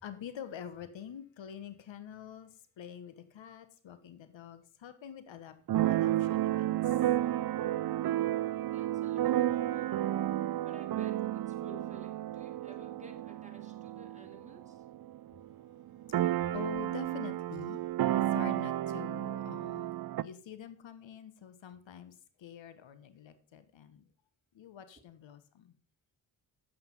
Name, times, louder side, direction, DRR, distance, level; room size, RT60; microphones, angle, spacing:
voice 1, 0.0-2.5 2.8-5.5 5.9-7.0 16.5-17.8 18.1-19.9 20.2-24.1 24.5-25.7, left 9 dB, 75° left, 1.3 m, -46 dB
Keyboard (musical), 5.7-15.2 15.5-15.6 15.8-20.2, right 13 dB, 50° right, 0.6 m, -32 dB
voice 2, 8.7-10.0 10.6-14.8, equal, 15° right, 3.4 m, -54 dB
8.6 x 7.6 x 5.4 m
supercardioid pair, 45°, 46 cm